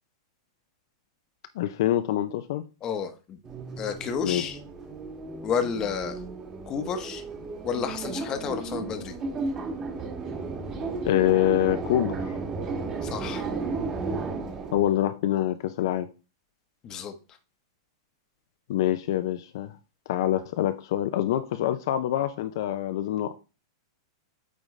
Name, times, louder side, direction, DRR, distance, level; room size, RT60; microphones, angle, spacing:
voice 1, 1.6-2.6 4.2-4.4 11.0-12.4 14.7-16.1 18.7-19.8 20.1-23.4, left 12 dB, 60° left, 0.5 m, -25 dB
voice 2, 2.8-3.4 3.8-4.6 5.4-6.2 6.6-7.2 7.6-9.2 13.0-13.5 16.8-17.1, left 6 dB, 25° left, 0.9 m, -31 dB
sound 1, 3.4-14.9, right 3 dB, 25° right, 1.4 m, -34 dB
8.5 x 3.8 x 3.2 m
supercardioid pair, 145°, 2 cm